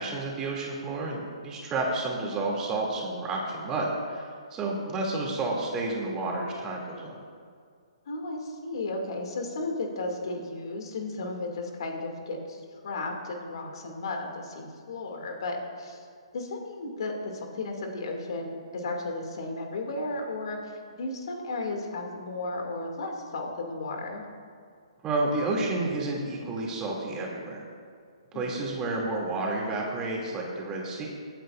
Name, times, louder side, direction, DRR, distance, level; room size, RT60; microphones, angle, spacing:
voice 1, 0.0-7.2 25.0-27.6 28.3-31.1, right 2 dB, 20° right, -2 dB, 2.6 m, -30 dB
voice 2, 4.6-5.0 8.1-16.1 16.3-24.2 28.3-28.5, left 2 dB, 60° left, 2 dB, 2.4 m, -34 dB
24.5 x 9.1 x 2.6 m, 2.1 s
figure-of-eight pair, 135°, 3 cm